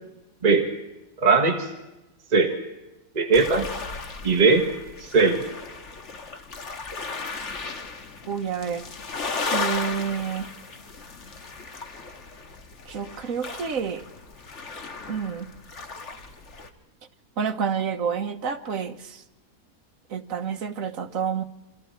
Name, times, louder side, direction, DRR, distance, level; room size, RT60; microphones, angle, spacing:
voice 1, 1.2-1.7 2.3-2.5 3.1-3.7 4.2-4.6 5.0-5.4, right 4 dB, 30° right, 3 dB, 1.7 m, -19 dB
sound 1, 3.3-16.7, left 4 dB, 50° left, 1.7 m, -35 dB
voice 2, 8.3-8.9 9.5-10.5 12.9-14.0 15.1-15.5 17.4-19.2 20.1-21.4, right 7 dB, 65° right, 7 dB, 1.5 m, -29 dB
28.5 x 24.5 x 4.5 m, 1.0 s
omnidirectional pair, 1.6 m